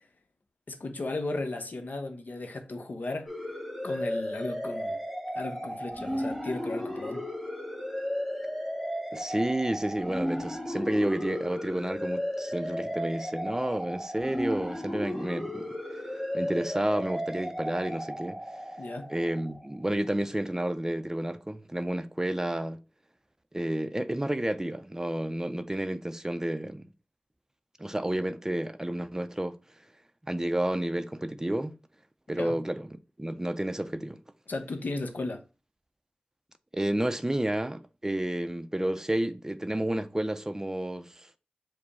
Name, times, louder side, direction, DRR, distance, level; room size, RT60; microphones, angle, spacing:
voice 1, 0.7-3.3 3.8-5.0 5.3-7.3 18.8-19.1 32.4-32.6 34.5-35.4, left 2 dB, 75° left, 0.7 m, -35 dB
sound 1, 3.3-19.7, equal, 5° left, 1.1 m, -34 dB
voice 2, 9.1-15.8 16.3-18.4 19.1-22.8 23.5-26.8 27.8-29.6 30.3-31.7 32.3-32.9 33.2-34.2 36.7-41.4, right 1 dB, 20° right, 0.4 m, -30 dB
4.8 x 2.0 x 4.7 m
wide cardioid pair, 50°, 3 cm